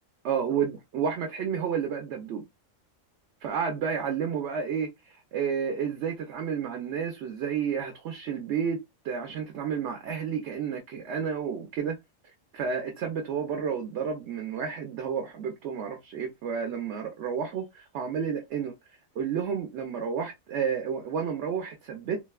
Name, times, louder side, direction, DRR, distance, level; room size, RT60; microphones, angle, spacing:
voice 1, 0.2-2.4 3.4-12.0 12.5-18.7 19.2-22.2, right 7 dB, 65° right, 0.9 m, -31 dB
3.3 x 2.1 x 2.3 m
omnidirectional pair, 1.4 m